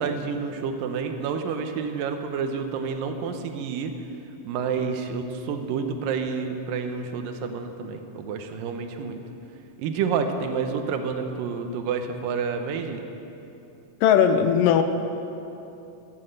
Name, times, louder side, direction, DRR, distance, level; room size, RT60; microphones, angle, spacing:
voice 1, 0.0-3.9 4.4-9.2 9.8-13.1, right 5 dB, 80° right, 6 dB, 2.6 m, -29 dB
voice 2, 14.0-14.8, left 8 dB, 80° left, 9 dB, 2.3 m, -18 dB
13.0 x 10.5 x 7.8 m, 2.9 s
omnidirectional pair, 3.9 m